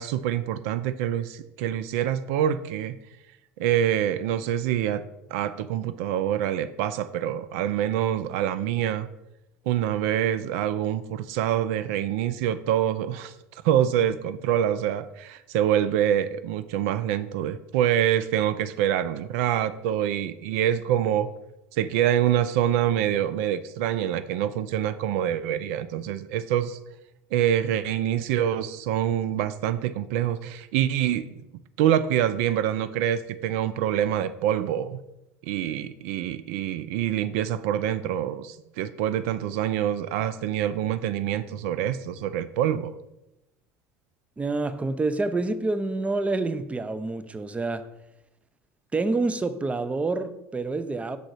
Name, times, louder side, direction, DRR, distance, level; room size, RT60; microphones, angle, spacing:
voice 1, 0.0-2.9 3.6-5.0 5.3-9.1 9.7-13.3 13.6-21.3 21.7-26.8 27.3-31.3 31.8-35.0 35.4-42.9, right 10 dB, 70° right, 0.4 m, -25 dB
voice 2, 44.4-47.9 48.9-51.2, right 3 dB, 15° right, 0.5 m, -27 dB
6.7 x 3.8 x 4.8 m
hypercardioid pair, 75°, 8 cm